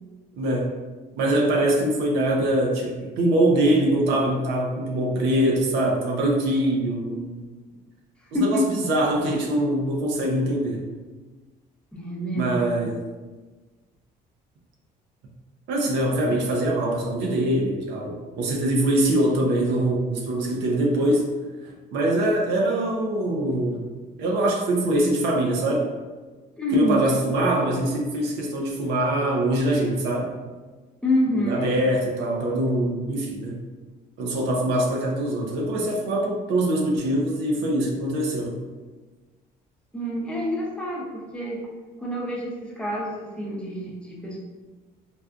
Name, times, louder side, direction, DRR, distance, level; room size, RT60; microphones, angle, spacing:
voice 1, 0.4-0.7 1.2-7.3 8.3-10.9 12.3-12.9 15.7-21.3 21.9-25.9 26.7-30.4 31.4-33.6 34.2-38.6, right 1 dB, 85° right, -1 dB, 0.7 m, -23 dB
voice 2, 8.3-8.6 11.9-12.6 26.6-27.0 31.0-31.7 39.9-41.7 42.0-44.4, left 1 dB, 5° left, -4 dB, 0.7 m, -27 dB
4.1 x 2.3 x 2.3 m, 1.3 s
cardioid pair, 110°, 17 cm